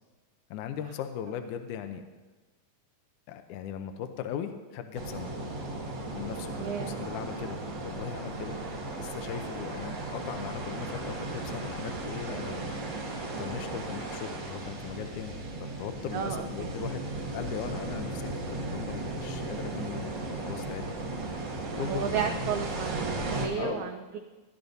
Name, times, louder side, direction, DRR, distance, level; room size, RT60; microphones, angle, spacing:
voice 1, 0.5-2.0 3.3-5.3 6.1-8.6 9.0-13.0 13.4-15.4 15.8-20.8 21.8-22.6 23.5-23.8, left 9 dB, 75° left, 7 dB, 2.0 m, -39 dB
sound 1, 4.9-23.5, right 2 dB, 50° right, 1.4 m, -36 dB
voice 2, 6.6-7.0 8.5-8.6 16.1-16.7 21.8-24.2, right 7 dB, 80° right, 4 dB, 1.7 m, -33 dB
17.5 x 11.5 x 2.6 m, 1.2 s
omnidirectional pair, 4.0 m